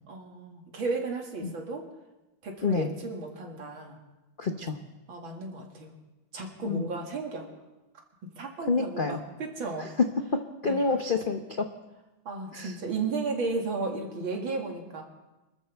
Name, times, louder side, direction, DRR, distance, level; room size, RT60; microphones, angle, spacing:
voice 1, 0.1-1.9 2.4-4.0 5.1-5.9 6.3-7.5 8.3-9.9 10.6-10.9 12.2-15.0, right 3 dB, 85° right, 1 dB, 2.9 m, -34 dB
voice 2, 4.4-4.8 6.7-6.9 8.7-9.2 9.8-9.9 10.6-11.7 12.5-12.7, left 4 dB, 85° left, 5 dB, 0.4 m, -28 dB
26.0 x 13.5 x 3.5 m, 1.0 s
omnidirectional pair, 2.1 m